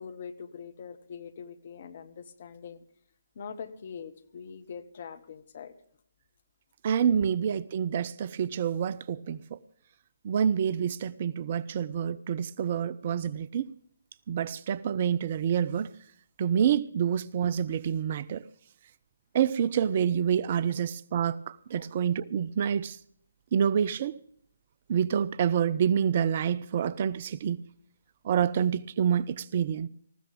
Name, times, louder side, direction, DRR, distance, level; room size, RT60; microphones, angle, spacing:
voice 1, 0.0-2.8 3.3-5.7 21.8-21.9, left 6 dB, 45° left, 1.5 m, -43 dB
voice 2, 6.8-9.6 10.2-13.7 14.3-15.9 16.4-18.4 19.3-23.0 23.5-24.2 24.9-27.6 28.2-29.9, right 8 dB, 35° right, 0.5 m, -27 dB
19.5 x 15.0 x 3.6 m
figure-of-eight pair, 140°, 0 cm